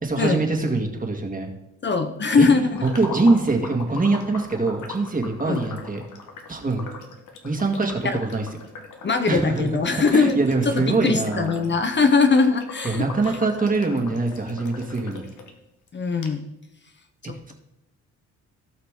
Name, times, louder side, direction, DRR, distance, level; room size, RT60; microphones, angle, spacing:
voice 1, 0.0-1.5 2.4-2.5 2.8-6.0 6.5-6.9 7.4-8.5 9.3-11.7 12.8-15.3 17.5-17.6, right 3 dB, 30° right, 3 dB, 2.0 m, -23 dB
voice 2, 1.8-2.9 5.5-5.6 8.0-8.2 9.0-10.4 10.6-13.0 15.9-16.4 17.2-17.5, left 4 dB, 35° left, 7 dB, 0.9 m, -21 dB
sound 1, 2.7-15.5 15.9-16.0 16.2-16.3, left 4 dB, 80° left, 1.5 m, -40 dB
17.0 x 5.8 x 3.8 m, 0.87 s
cardioid pair, 80°, 30 cm